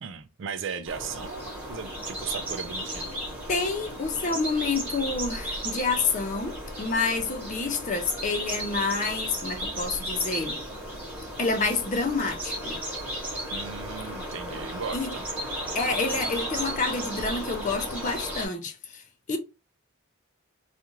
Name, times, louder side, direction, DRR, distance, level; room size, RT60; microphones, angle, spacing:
voice 1, 0.0-3.1 13.5-15.3, right 6 dB, 60° right, 0.4 m, -37 dB
sound 1, 0.8-18.5, right 1 dB, 10° right, 1.0 m, -35 dB
voice 2, 3.5-10.6 11.4-12.8 14.9-15.1 15.7-19.0 19.3-19.4, left 4 dB, 35° left, 0.4 m, -28 dB
2.4 x 2.4 x 2.9 m
head